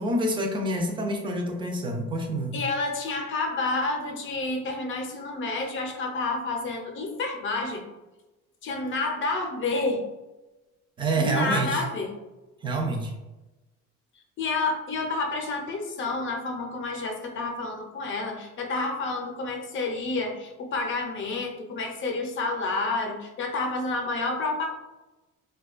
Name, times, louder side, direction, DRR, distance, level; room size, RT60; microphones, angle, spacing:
voice 1, 0.0-2.6 11.0-11.8 12.6-13.1, right 1 dB, 15° right, 2 dB, 0.4 m, -27 dB
voice 2, 2.5-7.8 8.6-10.0 11.2-12.1 14.4-24.7, left 3 dB, 40° left, 2 dB, 0.6 m, -29 dB
3.6 x 2.2 x 2.4 m, 1.1 s
cardioid pair, 145°, 30 cm